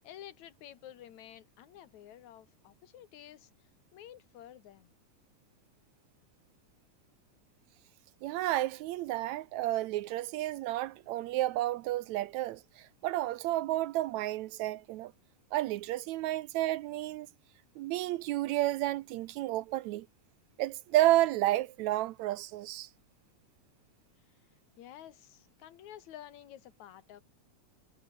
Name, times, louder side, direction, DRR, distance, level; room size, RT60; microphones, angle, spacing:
voice 1, 0.0-3.5 3.9-4.9 24.8-27.2, left 11 dB, 70° left, 2.6 m, -51 dB
voice 2, 8.2-15.1 15.5-17.3 17.8-20.1 20.6-22.9, right 15 dB, 75° right, 1.8 m, -31 dB
omnidirectional pair, 3.5 m